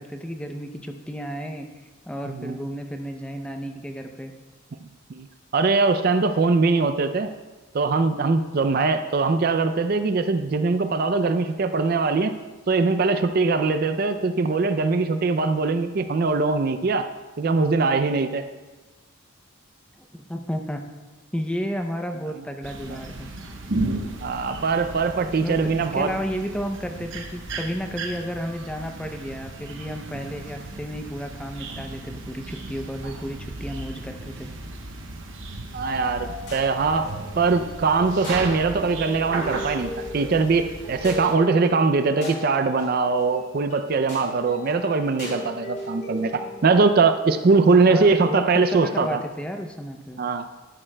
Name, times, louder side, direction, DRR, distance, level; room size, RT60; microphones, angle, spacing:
voice 1, 0.0-4.3 20.1-20.8 21.3-23.3 25.4-34.5 47.8-50.2, equal, 5° left, 4 dB, 0.5 m, -32 dB
voice 2, 2.3-2.6 5.1-5.3 5.5-7.3 7.7-12.3 12.7-17.1 17.4-18.5 22.9-23.0 24.2-26.1 30.1-30.2 35.7-49.2 50.2-50.4, right 4 dB, 45° right, 9 dB, 0.4 m, -22 dB
sound 1, 22.6-41.4, right 2 dB, 65° right, 1.0 m, -35 dB
sound 2, 35.9-48.0, left 1 dB, 55° left, 3.4 m, -38 dB
12.5 x 11.0 x 2.2 m, 1.2 s
head